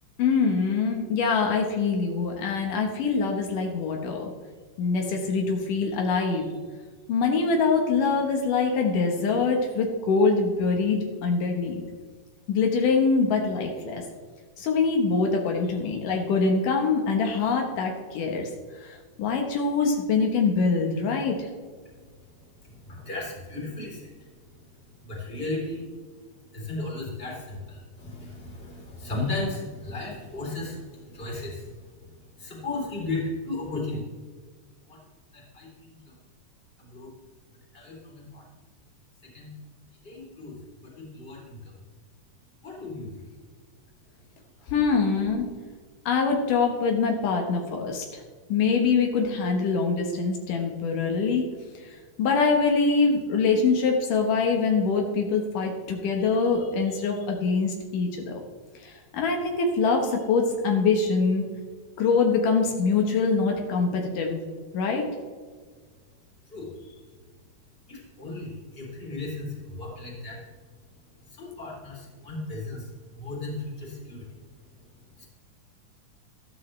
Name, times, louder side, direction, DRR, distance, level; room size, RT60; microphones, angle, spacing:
voice 1, 0.2-4.3 4.8-6.5 7.1-11.8 12.5-14.0 14.6-18.5 18.8-21.5 44.7-45.5 46.1-48.2 48.5-51.4 52.2-58.4 58.8-61.4 62.0-64.4 64.7-65.1, left 4 dB, 75° left, 2 dB, 2.8 m, -24 dB
voice 2, 21.8-25.9 26.5-34.0 34.9-35.0 35.3-36.1 36.8-37.1 37.7-38.4 39.3-39.5 40.0-41.7 42.6-43.2 66.5-66.7 67.9-70.4 71.2-74.7 75.0-75.3, left 2 dB, 15° left, -3 dB, 3.4 m, -36 dB
14.0 x 13.0 x 3.3 m, 1.5 s
omnidirectional pair, 3.8 m